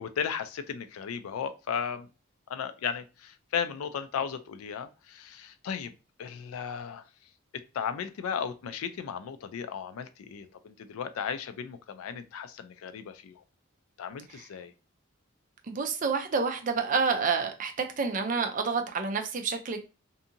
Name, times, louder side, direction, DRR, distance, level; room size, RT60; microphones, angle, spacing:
voice 1, 0.0-2.1 2.5-5.9 6.2-7.0 7.5-13.4 14.0-14.7, left 7 dB, 85° left, 0.3 m, -35 dB
voice 2, 15.7-19.8, right 5 dB, 40° right, 0.4 m, -28 dB
2.7 x 2.6 x 2.5 m
head